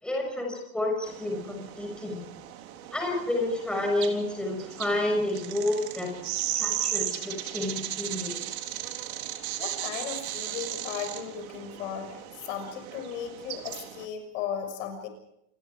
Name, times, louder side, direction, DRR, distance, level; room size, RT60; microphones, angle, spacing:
voice 1, 0.0-2.3 2.9-6.1 6.6-8.4, left 1 dB, ahead, 0 dB, 6.6 m, -30 dB
sound 1, 1.1-14.1, right 12 dB, 70° right, 3.9 m, -36 dB
voice 2, 9.6-15.1, left 8 dB, 55° left, 8 dB, 6.6 m, -36 dB
29.0 x 23.0 x 5.0 m, 0.76 s
supercardioid pair, 175°, 44 cm